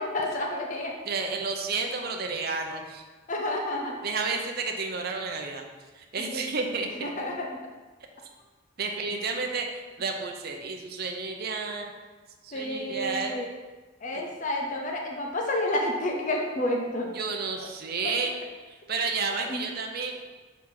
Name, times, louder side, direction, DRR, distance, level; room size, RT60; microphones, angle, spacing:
voice 1, 0.0-0.9 3.3-3.9 6.2-6.5 7.0-7.5 12.5-13.5 14.0-17.1 19.5-19.6, left 1 dB, 35° left, 0 dB, 0.6 m, -30 dB
voice 2, 1.1-3.0 4.0-5.6 5.9-7.1 8.8-12.0 12.4-13.4 14.1-14.2 17.1-18.4 18.7-20.2, right 4 dB, 50° right, 3 dB, 0.6 m, -31 dB
6.1 x 4.4 x 3.8 m, 1.3 s
head